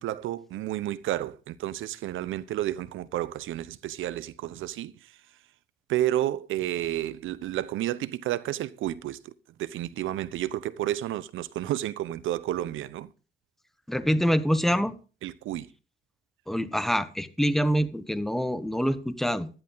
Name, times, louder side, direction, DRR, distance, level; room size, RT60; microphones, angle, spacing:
voice 1, 0.0-5.1 5.9-9.3 9.6-13.1 15.2-15.7, right 13 dB, 80° right, 0.8 m, -31 dB
voice 2, 13.9-14.9 16.5-19.5, equal, ahead, 1.2 m, -25 dB
12.5 x 11.0 x 4.0 m
cardioid pair, 90°, 20 cm